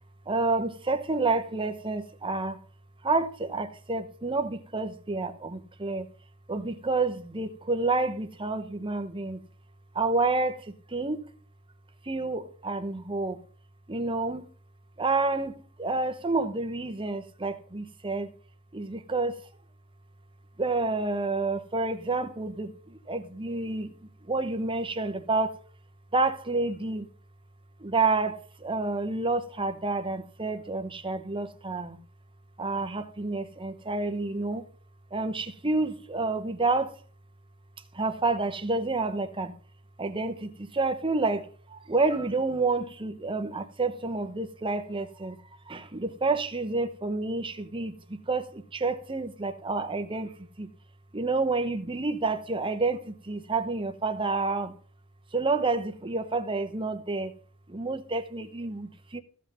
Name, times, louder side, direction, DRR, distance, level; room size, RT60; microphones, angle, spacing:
voice 1, 0.3-2.6 3.0-6.1 6.5-9.4 9.9-11.2 12.1-13.4 13.9-14.4 15.0-18.3 18.7-19.4 20.6-23.9 24.3-25.6 26.1-27.1 27.8-32.0 32.6-34.7 35.1-36.9 37.9-39.5 40.0-45.4 45.7-50.3 50.6-50.7 51.1-54.7 55.3-57.3 57.7-59.2, right 3 dB, 25° right, 1.0 m, -29 dB
14.5 x 5.8 x 5.5 m
head